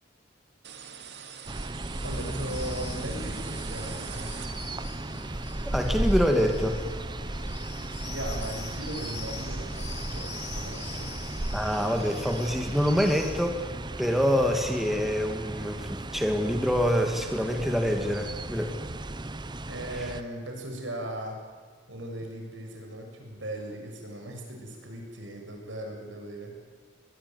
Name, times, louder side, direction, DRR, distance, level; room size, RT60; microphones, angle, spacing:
sound 1, 0.6-5.0, right 8 dB, 65° right, 2.5 m, -44 dB
sound 2, 1.5-20.2, right 1 dB, 25° right, 0.9 m, -35 dB
sound 3, 2.0-13.3, left 2 dB, 40° left, 4.9 m, -42 dB
voice 1, 2.0-4.3 7.9-11.1 19.7-21.4 21.9-26.5, right 1 dB, 80° right, 2 dB, 7.2 m, -38 dB
voice 2, 5.6-6.8 11.5-13.6 14.0-18.9, equal, ahead, 4 dB, 2.1 m, -26 dB
24.0 x 20.5 x 9.5 m, 1.5 s
head